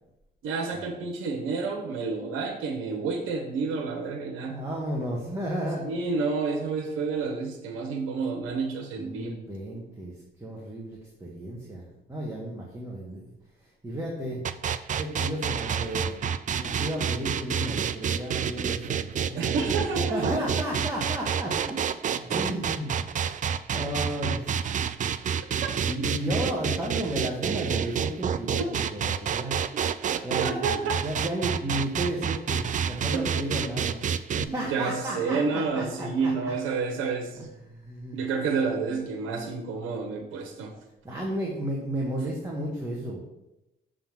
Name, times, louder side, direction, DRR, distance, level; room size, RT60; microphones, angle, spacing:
voice 1, 0.4-4.6 5.8-9.4 19.3-20.3 28.6-28.7 30.4-31.0 33.1-33.3 34.6-37.5 38.1-40.7, right 4 dB, 85° right, 3 dB, 1.0 m, -29 dB
voice 2, 4.5-5.9 9.0-10.1 10.4-13.2 13.8-14.4 15.0-19.8 20.1-21.8 22.1-23.0 23.7-24.8 25.8-29.6 30.2-34.0 34.3-36.5 37.6-38.2 41.0-43.2, right 1 dB, 15° right, -3 dB, 1.6 m, -33 dB
sound 1, 14.4-34.4, right 8 dB, 40° right, 0.4 m, -28 dB
6.7 x 3.9 x 6.1 m, 0.91 s
cardioid pair, 90°, 20 cm